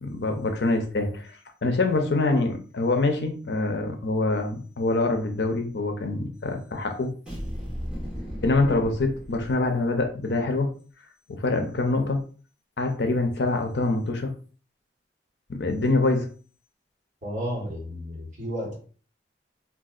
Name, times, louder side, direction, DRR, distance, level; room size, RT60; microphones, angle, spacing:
voice 1, 0.0-7.1 8.4-10.7 11.3-12.2 12.8-14.3 15.5-16.3, left 2 dB, 70° left, 0.6 m, -25 dB
sound 1, 7.3-10.0, equal, 5° right, 1.3 m, -36 dB
voice 2, 17.2-18.8, equal, 45° right, 1.2 m, -32 dB
3.9 x 2.4 x 2.4 m
head